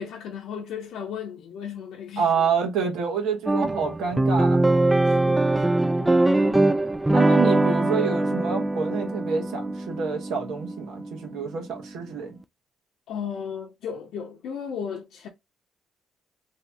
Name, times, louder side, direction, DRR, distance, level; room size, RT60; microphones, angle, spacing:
voice 1, 0.0-2.5 5.0-6.8 13.1-15.3, left 7 dB, 80° left, 0.7 m, -36 dB
voice 2, 2.2-4.6 7.1-12.4, right 5 dB, 90° right, 1.0 m, -28 dB
sound 1, 3.5-11.9, right 2 dB, 15° right, 0.3 m, -22 dB
2.8 x 2.8 x 3.4 m
cardioid pair, 90°, 0 cm